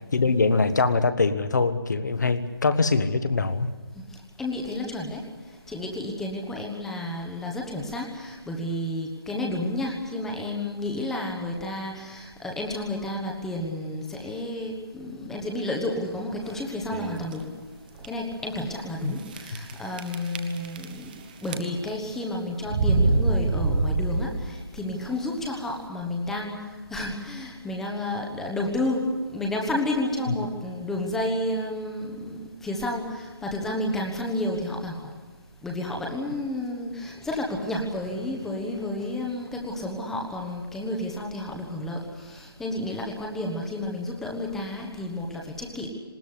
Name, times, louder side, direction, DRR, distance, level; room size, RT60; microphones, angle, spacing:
voice 1, 0.1-3.7 19.0-19.1 30.3-30.4, left 4 dB, 45° left, 11 dB, 1.4 m, -23 dB
voice 2, 4.4-5.2 5.7-17.5 18.0-21.1 21.4-26.6 26.9-35.1 35.6-45.9, left 1 dB, 5° left, 0 dB, 1.2 m, -31 dB
sound 1, 16.9-17.3 18.0-18.1 18.3-18.4 19.3-19.7 20.0-21.1 21.4-22.0 22.7-24.6, right 3 dB, 20° right, 1.1 m, -25 dB
20.0 x 18.5 x 9.8 m, 1.3 s
figure-of-eight pair, 155°, 13 cm